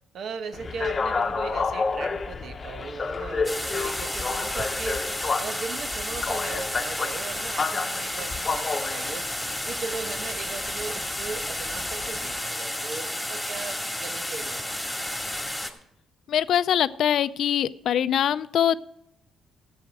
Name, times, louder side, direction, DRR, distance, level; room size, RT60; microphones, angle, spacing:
voice 1, 0.1-9.3 9.6-14.8, right 5 dB, 65° right, 8 dB, 1.0 m, -38 dB
sound 1, 0.5-12.4, left 4 dB, 35° left, 0.9 m, -31 dB
sound 2, 3.4-15.7, left 1 dB, 5° left, 2.1 m, -32 dB
voice 2, 16.3-18.8, left 10 dB, 70° left, 15 dB, 0.5 m, -23 dB
13.5 x 7.7 x 6.1 m, 0.77 s
cardioid pair, 90°, 0 cm